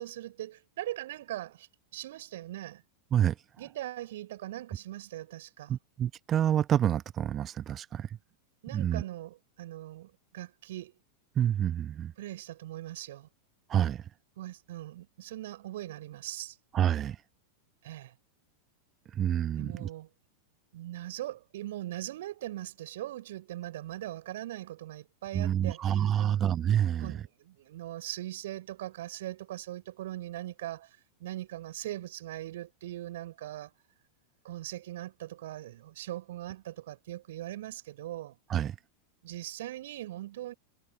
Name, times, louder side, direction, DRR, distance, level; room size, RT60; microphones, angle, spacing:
voice 1, 0.0-2.8 3.6-5.8 8.6-10.9 12.2-13.3 14.4-16.6 17.8-18.2 19.6-20.1 20.7-26.5 26.8-33.7 34.4-38.4 39.2-40.5, right 14 dB, 55° right, 5.6 m, -40 dB
voice 2, 5.7-8.1 8.7-9.0 11.4-12.1 13.7-14.0 16.7-17.2 19.1-19.9 25.3-27.2 38.5-38.7, right 10 dB, 25° right, 1.4 m, -28 dB
figure-of-eight pair, 90°, 0 cm